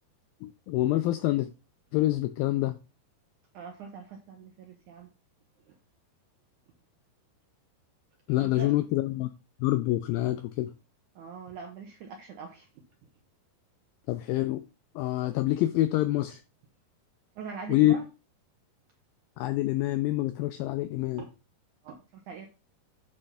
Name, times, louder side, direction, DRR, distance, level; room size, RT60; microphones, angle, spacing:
voice 1, 0.4-1.5 1.9-2.8 8.3-9.3 9.6-10.7 14.1-14.6 15.0-16.4 17.7-18.0 19.4-21.2, left 16 dB, 90° left, 2.0 m, -26 dB
voice 2, 3.5-5.1 5.7-5.8 8.4-8.8 11.2-12.7 17.4-18.1 21.2-21.3 21.8-22.5, right 6 dB, 75° right, 1.8 m, -42 dB
9.6 x 3.4 x 5.5 m
omnidirectional pair, 4.7 m